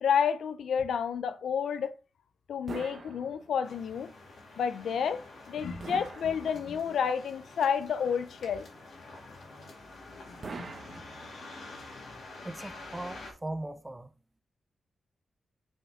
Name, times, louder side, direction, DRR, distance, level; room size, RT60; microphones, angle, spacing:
voice 1, 0.0-1.9 2.5-4.1 4.6-5.2 5.5-8.7, left 7 dB, 90° left, 0.5 m, -30 dB
sound 1, 2.7-3.9 5.8-7.0 10.4-11.7, right 4 dB, 40° right, 0.8 m, -44 dB
sound 2, 3.6-13.3, left 3 dB, 65° left, 2.4 m, -46 dB
voice 2, 12.4-14.1, right 1 dB, 10° right, 0.4 m, -39 dB
5.6 x 5.5 x 3.5 m
wide cardioid pair, 175°, 0 cm